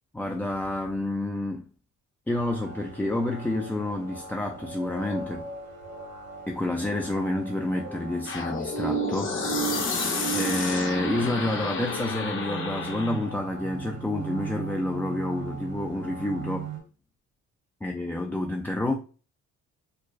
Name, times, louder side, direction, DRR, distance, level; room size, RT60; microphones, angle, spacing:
voice 1, 0.1-1.7 2.3-5.5 6.5-10.0 10.3-16.8 17.8-18.9, left 1 dB, 5° left, 0.3 m, -29 dB
sound 1, 2.3-16.8, right 6 dB, 60° right, 1.1 m, -37 dB
sound 2, 8.3-13.3, left 4 dB, 40° left, 0.9 m, -31 dB
4.5 x 2.0 x 2.5 m
cardioid pair, 90°, 30 cm